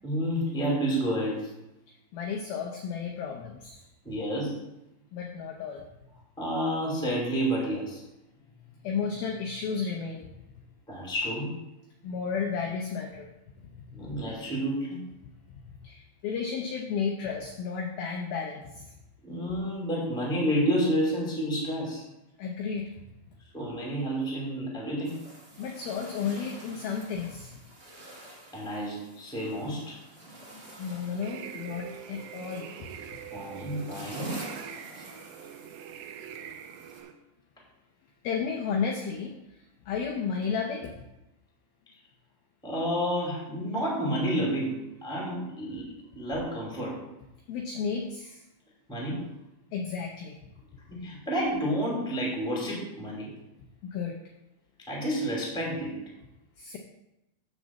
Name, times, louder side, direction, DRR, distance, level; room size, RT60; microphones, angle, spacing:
voice 1, 0.0-1.5 4.0-4.6 6.4-8.0 10.9-11.6 13.9-15.0 19.2-22.0 23.5-25.2 28.5-30.0 33.3-34.3 34.9-35.0 42.6-47.0 48.9-49.3 50.9-53.3 54.9-56.0, equal, ahead, -3 dB, 1.1 m, -30 dB
voice 2, 2.1-3.8 5.1-5.9 8.8-10.3 12.0-13.3 13.9-14.1 15.5-18.9 22.4-22.9 25.6-27.6 30.8-32.7 38.2-39.6 39.9-40.9 47.5-48.4 49.7-50.4 51.0-51.1 53.8-54.2 56.6-56.8, left 6 dB, 90° left, 2 dB, 2.1 m, -33 dB
sound 1, 25.0-37.0, right 2 dB, 35° right, 0.8 m, -46 dB
sound 2, 31.2-37.1, right 9 dB, 80° right, 2.8 m, -43 dB
9.7 x 4.1 x 7.3 m, 0.92 s
omnidirectional pair, 5.4 m